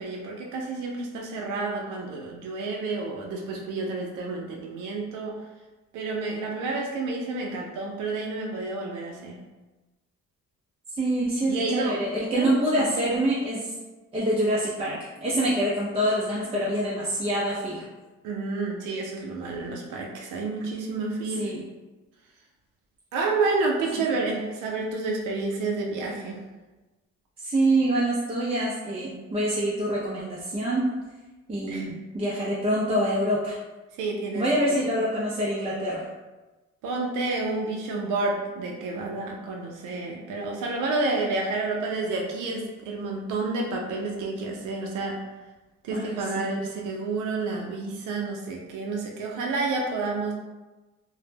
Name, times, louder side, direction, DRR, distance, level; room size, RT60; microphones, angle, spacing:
voice 1, 0.0-5.4 5.9-9.4 11.5-12.0 12.4-12.9 18.2-21.5 23.1-26.4 31.7-31.9 34.0-34.5 34.8-34.9 36.8-45.2 45.8-50.3, right 3 dB, 90° right, 0 dB, 0.5 m, -30 dB
voice 2, 11.0-13.7 14.1-17.9 21.4-21.6 27.4-30.9 31.5-33.6 34.3-36.1 45.9-46.6, right 1 dB, 20° right, -6 dB, 0.4 m, -26 dB
2.0 x 2.0 x 3.2 m, 1.2 s
cardioid pair, 90°, 30 cm